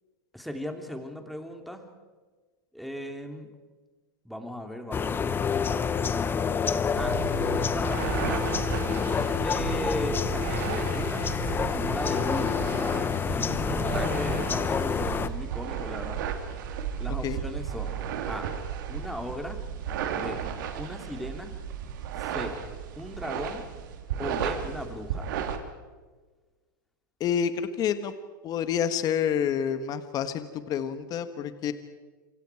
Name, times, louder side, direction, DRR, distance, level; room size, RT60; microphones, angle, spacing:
voice 1, 0.3-1.9 2.7-3.5 4.2-5.5 5.9-7.2 7.7-8.6 9.3-12.7 13.3-16.2 16.9-18.0 18.3-18.5 18.9-19.6 20.1-20.4 20.8-21.5 22.2-22.6 23.0-23.6 24.2-25.3, left 1 dB, ahead, 4 dB, 3.0 m, -37 dB
sound 1, 4.9-15.3, left 6 dB, 20° left, 1.0 m, -28 dB
sound 2, 7.0-25.6, right 8 dB, 65° right, 2.9 m, -34 dB
voice 2, 27.2-28.1 28.4-31.7, left 8 dB, 35° left, 10 dB, 1.5 m, -28 dB
28.0 x 24.5 x 4.8 m, 1.3 s
hypercardioid pair, 115°, 11 cm